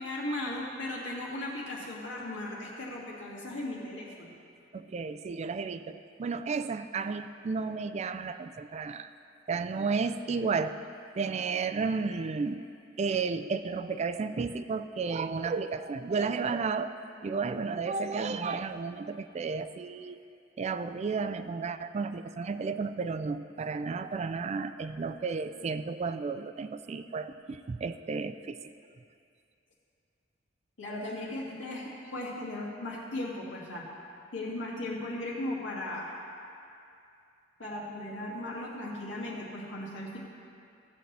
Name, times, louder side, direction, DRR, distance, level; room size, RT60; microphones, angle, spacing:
voice 1, 0.0-4.3 30.8-33.9 34.3-36.2 37.6-40.2, left 1 dB, 85° left, -4 dB, 2.0 m, -37 dB
voice 2, 4.7-9.1 9.5-10.8 11.1-12.6 13.0-20.2 20.6-28.6 30.9-31.2 37.7-37.9 38.2-38.4, right 4 dB, 35° right, 10 dB, 0.3 m, -33 dB
15.5 x 7.9 x 3.3 m, 2.5 s
head